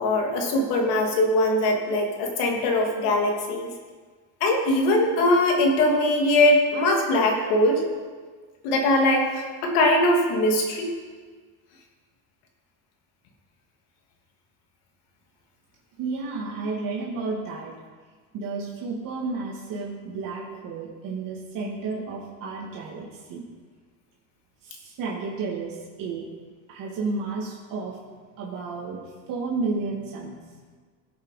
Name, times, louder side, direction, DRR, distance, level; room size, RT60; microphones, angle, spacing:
voice 1, 0.0-3.7 4.4-7.8 8.6-10.9, left 1 dB, 85° left, 1 dB, 2.7 m, -21 dB
voice 2, 16.0-17.7 18.3-23.4 24.6-26.3 26.7-28.0 28.4-29.0 29.3-30.4, right 4 dB, 55° right, -3 dB, 2.3 m, -32 dB
17.5 x 8.1 x 4.9 m, 1.5 s
cardioid pair, 140°, 39 cm